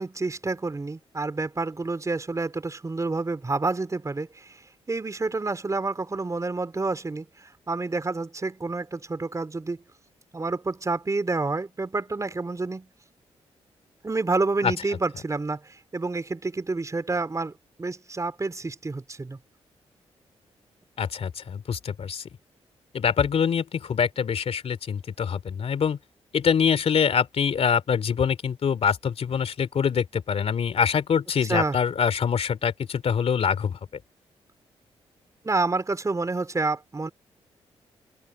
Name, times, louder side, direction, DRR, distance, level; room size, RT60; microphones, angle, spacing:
voice 1, 0.0-4.6 4.9-9.8 10.3-12.9 14.0-17.5 17.8-19.4 31.5-31.8 35.4-37.1, right 3 dB, 30° right, 3.9 m, -28 dB
voice 2, 21.0-22.2 22.9-26.0 26.3-33.8, left 7 dB, 65° left, 2.9 m, -24 dB
open air
cardioid pair, 65°, 11 cm